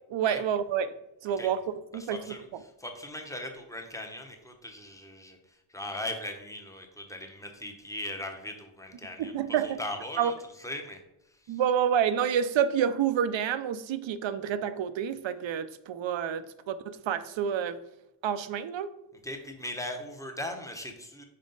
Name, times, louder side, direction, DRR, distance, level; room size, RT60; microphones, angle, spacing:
voice 1, 0.1-0.9 1.2-1.6 1.9-2.6 9.2-9.8 10.2-10.3 11.5-17.8 18.2-18.9, right 8 dB, 70° right, 0.6 m, -28 dB
voice 2, 1.9-2.5 2.8-9.3 9.6-11.0 11.4-11.6 19.2-21.2, left 1 dB, 5° left, 0.8 m, -39 dB
5.4 x 5.0 x 3.9 m
wide cardioid pair, 120°, 47 cm